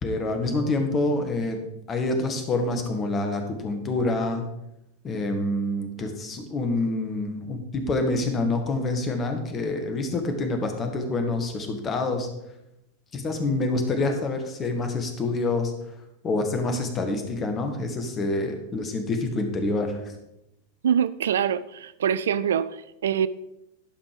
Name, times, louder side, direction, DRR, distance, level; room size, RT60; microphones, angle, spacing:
voice 1, 0.0-1.6 1.9-4.4 5.0-12.3 13.1-15.7 16.2-20.1, left 2 dB, 25° left, 5 dB, 1.5 m, -27 dB
voice 2, 20.8-23.3, right 8 dB, 60° right, 15 dB, 0.3 m, -24 dB
11.5 x 5.2 x 5.0 m, 0.86 s
figure-of-eight pair, 90°, 0 cm